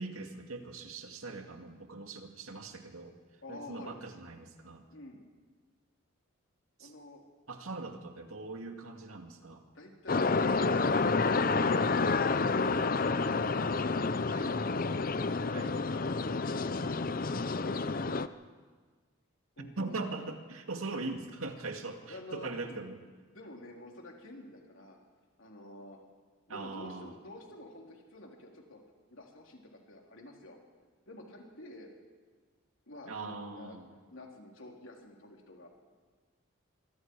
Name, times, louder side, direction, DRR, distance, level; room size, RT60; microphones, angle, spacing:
voice 1, 0.0-3.2 3.5-4.9 6.8-6.9 7.5-9.6 14.3-14.5 15.5-15.7 19.6-23.0 26.5-27.1 33.1-33.9, right 3 dB, 90° right, 4 dB, 2.2 m, -41 dB
voice 2, 3.4-4.0 4.9-5.2 6.8-7.2 9.7-10.8 13.2-14.8 15.2-15.6 16.0-17.1 19.6-20.0 22.1-22.8 23.3-25.0 25.4-26.0 26.5-28.8 29.1-30.6 31.1-31.9 32.9-33.8 34.1-35.7, left 1 dB, 70° left, 0 dB, 3.8 m, -49 dB
sound 1, 10.1-18.3, left 4 dB, 40° left, 0.6 m, -29 dB
25.5 x 24.0 x 4.8 m, 1.5 s
head